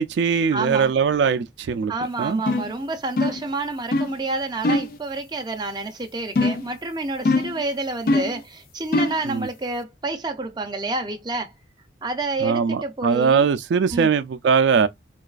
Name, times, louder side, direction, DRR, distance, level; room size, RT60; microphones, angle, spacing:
voice 1, 0.0-1.9 2.2-2.4 9.2-9.5 12.4-14.9, right 6 dB, 75° right, 0.3 m, -21 dB
voice 2, 0.5-0.9 1.9-11.5 12.0-13.5 13.9-14.1, right 2 dB, 25° right, 0.5 m, -29 dB
sound 1, 2.5-2.8 3.2-3.5 3.9-4.2 4.6-5.0 6.4-6.7 7.3-7.6 8.1-8.4 8.9-9.3, left 2 dB, 50° left, 0.4 m, -22 dB
3.9 x 2.3 x 2.4 m
head